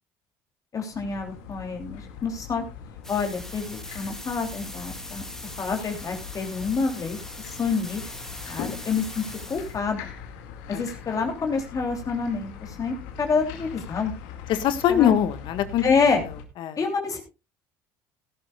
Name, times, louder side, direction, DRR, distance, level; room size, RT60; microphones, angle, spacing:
voice 1, 0.7-2.6 3.1-5.2 5.6-7.2 7.4-8.0 8.5-9.2 9.5-10.1 10.7-14.1 14.9-15.1 15.8-16.2 16.8-17.2, left 5 dB, 40° left, 3 dB, 3.2 m, -27 dB
sound 1, 0.9-16.4, left 7 dB, 80° left, 2.3 m, -41 dB
sound 2, 3.0-9.8, left 1 dB, 5° left, 1.9 m, -41 dB
voice 2, 14.5-15.8 16.2-16.8, left 10 dB, 65° left, 10 dB, 1.6 m, -23 dB
17.5 x 11.5 x 2.4 m, 0.26 s
supercardioid pair, 75°, 9 cm